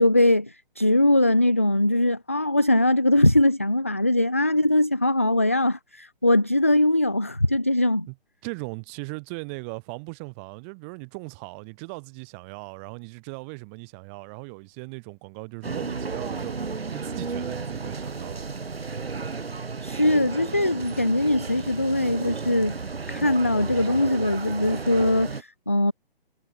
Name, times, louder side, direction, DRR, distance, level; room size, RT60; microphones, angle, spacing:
voice 1, 0.0-8.1 19.8-22.8 23.1-25.9, left 1 dB, 15° left, 0.5 m, -21 dB
voice 2, 8.4-18.4, right 35 dB, 15° right, 6.2 m, -38 dB
sound 1, 15.6-25.4, right 4 dB, 90° right, 5.6 m, -33 dB
hypercardioid pair, 175°, 29 cm